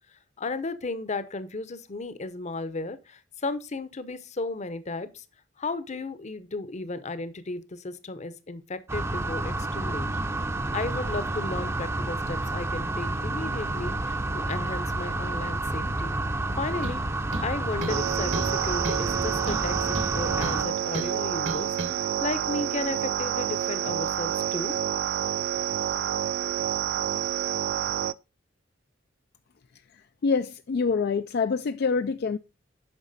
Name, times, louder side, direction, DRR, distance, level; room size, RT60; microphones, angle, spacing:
voice 1, 0.4-5.2 5.6-10.1 10.7-16.2 16.6-17.0 17.4-19.8 20.1-24.7, left 3 dB, 40° left, 0.8 m, -34 dB
sound 1, 8.9-20.6, right 2 dB, 15° right, 0.6 m, -30 dB
sound 2, 16.8-17.0 17.3-18.0 18.3-18.6 18.8-19.1 19.5-20.6 20.9-21.1 21.5-21.9, right 2 dB, 70° right, 1.7 m, -34 dB
sound 3, 17.9-28.1, right 10 dB, 55° right, 0.3 m, -28 dB
voice 2, 30.2-32.4, left 5 dB, 55° left, 0.4 m, -26 dB
8.9 x 5.8 x 4.1 m
head